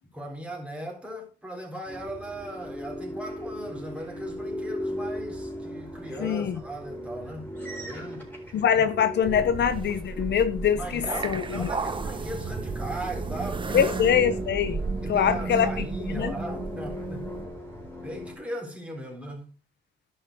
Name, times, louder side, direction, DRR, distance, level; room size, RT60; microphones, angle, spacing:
voice 1, 0.1-7.5 7.8-8.3 10.7-13.9 14.6-14.7 15.0-17.3 18.0-19.5, right 1 dB, 5° right, 4.0 m, -38 dB
sound 1, 1.9-18.4, equal, 10° left, 4.2 m, -38 dB
voice 2, 6.2-6.6 8.5-11.7 13.7-14.8 15.1-16.3, left 8 dB, 60° left, 0.8 m, -24 dB
sound 2, 9.2-17.5, right 4 dB, 25° right, 1.0 m, -33 dB
11.5 x 5.7 x 4.7 m
cardioid pair, 90°, 20 cm